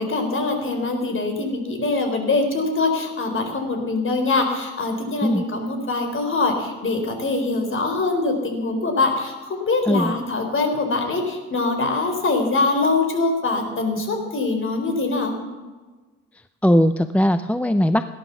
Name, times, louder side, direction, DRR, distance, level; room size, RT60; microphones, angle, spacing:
voice 1, 0.0-15.4, left 3 dB, 45° left, 5 dB, 4.4 m, -23 dB
voice 2, 16.6-18.0, equal, 5° left, 11 dB, 0.6 m, -19 dB
18.0 x 11.0 x 7.1 m, 1.3 s
cardioid pair, 90°, 30 cm